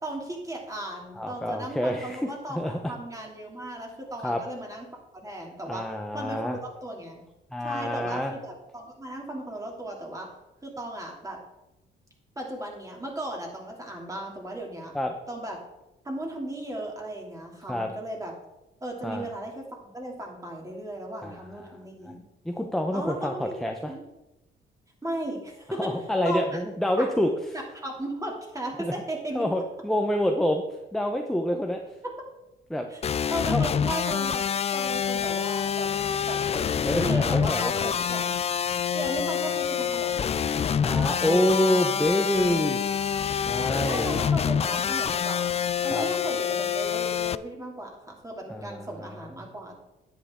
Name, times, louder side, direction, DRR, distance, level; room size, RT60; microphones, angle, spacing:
voice 1, 0.0-4.9 5.1-5.8 6.1-7.2 7.6-10.3 10.6-11.4 12.4-14.9 15.3-15.6 16.0-18.3 18.8-22.2 22.9-23.5 23.9-24.0 25.0-25.9 26.2-26.6 27.0-27.1 27.7-29.4 32.9-33.0 33.3-35.9 36.3-38.4 38.9-40.3 43.9-49.8, right 1 dB, 15° right, -1 dB, 2.8 m, -36 dB
voice 2, 1.2-2.9 4.2-4.4 5.7-6.6 7.5-8.3 14.9-15.1 17.7-17.9 19.0-19.3 21.2-21.8 22.1-22.2 22.4-23.9 25.8-27.3 28.8-28.9 29.3-30.6 30.9-31.8 32.7-32.9 33.5-33.6 36.8-37.9 40.8-42.8 43.5-44.1 45.9-46.1 48.5-49.3, left 1 dB, ahead, 4 dB, 0.9 m, -27 dB
sound 1, 33.0-47.4, left 7 dB, 30° left, 0.3 m, -26 dB
10.0 x 8.6 x 3.7 m, 0.97 s
cardioid pair, 90°, 20 cm